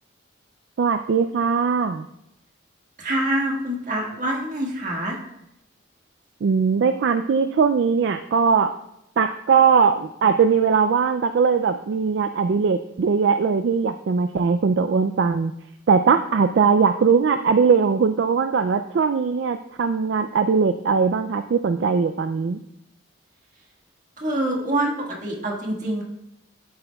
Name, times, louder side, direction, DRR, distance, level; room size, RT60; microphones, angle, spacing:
voice 1, 0.8-2.1 6.4-8.7 9.2-15.5 15.9-22.6, right 5 dB, 60° right, 9 dB, 0.3 m, -20 dB
voice 2, 3.0-5.2 24.2-26.0, right 1 dB, 40° right, -1 dB, 1.6 m, -25 dB
12.0 x 7.8 x 2.3 m, 0.82 s
head